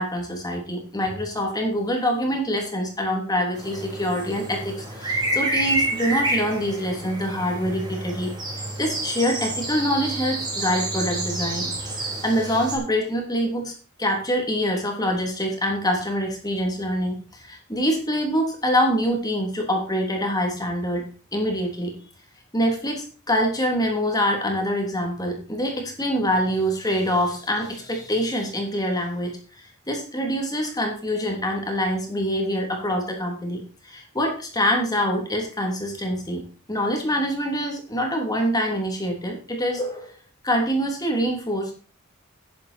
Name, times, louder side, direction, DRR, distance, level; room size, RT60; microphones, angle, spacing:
voice 1, 0.0-8.3 8.6-13.7 14.0-21.9 22.5-29.4 29.9-40.1 40.4-41.7, equal, 20° left, 2 dB, 3.1 m, -25 dB
sound 1, 3.5-12.8, right 1 dB, 20° right, 3.4 m, -29 dB
10.5 x 10.0 x 4.4 m, 0.37 s
head